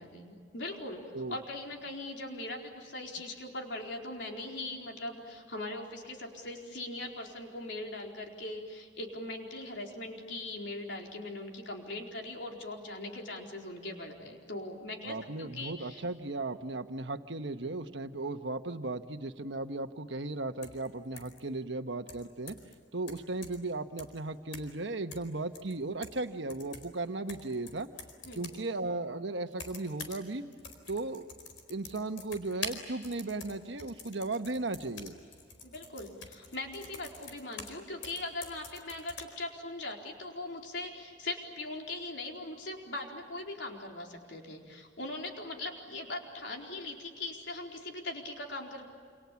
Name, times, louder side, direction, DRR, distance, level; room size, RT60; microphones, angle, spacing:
voice 1, 0.0-16.0 28.2-28.4 35.6-48.9, left 2 dB, 65° left, 1 dB, 4.4 m, -40 dB
voice 2, 15.1-22.6 22.9-27.9 28.3-30.5 30.9-31.2 31.7-35.1, right 2 dB, 70° right, 7 dB, 1.4 m, -36 dB
sound 1, 20.6-20.9 21.2-21.4 22.1-22.7 23.1-23.7 24.0-24.2 24.5-24.8 25.1-26.2 26.5-28.7 29.5-30.3 30.5-37.8 38.0-39.2, left 4 dB, 85° left, 4.5 m, -46 dB
28.5 x 28.0 x 7.3 m, 2.1 s
head